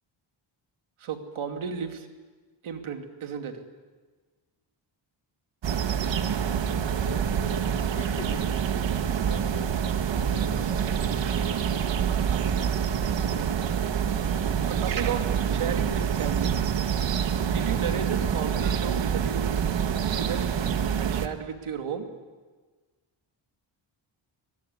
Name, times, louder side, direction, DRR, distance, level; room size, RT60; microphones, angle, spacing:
voice 1, 1.0-2.1 2.6-3.6 14.7-16.6 17.5-19.5 20.0-20.5 21.0-22.1, right 7 dB, 80° right, 5 dB, 2.7 m, -33 dB
sound 1, 5.6-21.3, right 8 dB, 65° right, 1.5 m, -26 dB
voice 2, 7.0-8.7 9.2-9.8 10.2-11.0, left 4 dB, 70° left, 7 dB, 4.8 m, -43 dB
24.5 x 20.0 x 9.7 m, 1.4 s
wide cardioid pair, 170°, 48 cm